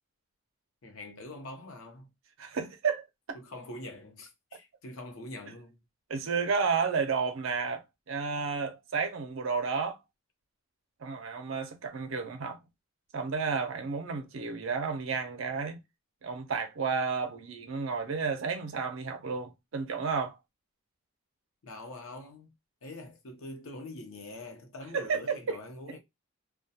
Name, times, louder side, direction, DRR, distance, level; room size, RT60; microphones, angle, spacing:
voice 1, 0.8-2.1 3.4-5.8 21.6-22.5 22.8-26.0, left 2 dB, 65° left, 0.7 m, -44 dB
voice 2, 2.4-3.0 6.1-10.0 11.0-12.6 13.1-15.8 16.2-20.4 24.9-25.6, right 5 dB, 60° right, 0.5 m, -32 dB
2.2 x 2.2 x 2.6 m
head